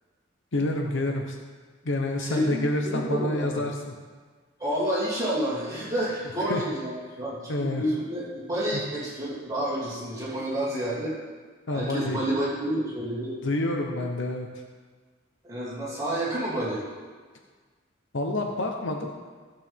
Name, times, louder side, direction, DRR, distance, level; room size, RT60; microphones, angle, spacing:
voice 1, 0.5-1.4 1.8-3.9 6.5-6.6 7.5-7.8 11.7-12.2 13.4-14.5 18.1-19.1, left 1 dB, 65° left, 2 dB, 0.9 m, -28 dB
voice 2, 2.2-3.6 4.6-11.2 11.7-13.3 15.4-16.8, right 1 dB, 20° right, -8 dB, 2.9 m, -29 dB
15.5 x 7.2 x 3.6 m, 1.5 s
head